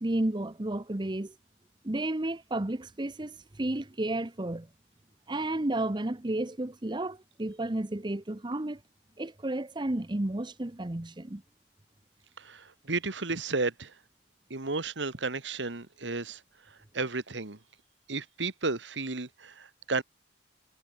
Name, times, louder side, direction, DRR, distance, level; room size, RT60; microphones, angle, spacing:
voice 1, 0.0-1.3 1.8-4.7 5.3-8.8 9.2-11.4, right 1 dB, 25° right, 0.9 m, -32 dB
voice 2, 12.4-13.9 14.5-16.4 16.9-17.6 18.1-20.0, right 3 dB, 80° right, 1.8 m, -33 dB
head